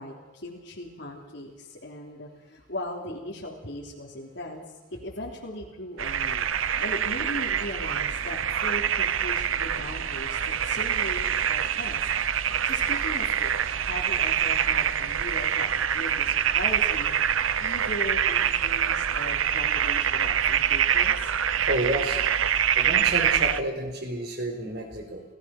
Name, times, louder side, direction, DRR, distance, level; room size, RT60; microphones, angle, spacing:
voice 1, 0.0-4.6 5.0-12.1 12.6-17.2 17.6-21.3, left 1 dB, 60° left, -3 dB, 3.3 m, -38 dB
sound 1, 6.0-23.6, right 9 dB, 80° right, 0.8 m, -25 dB
voice 2, 21.7-22.2 22.7-25.2, right 1 dB, 50° right, 4 dB, 4.3 m, -30 dB
29.0 x 18.0 x 6.0 m, 1.1 s
head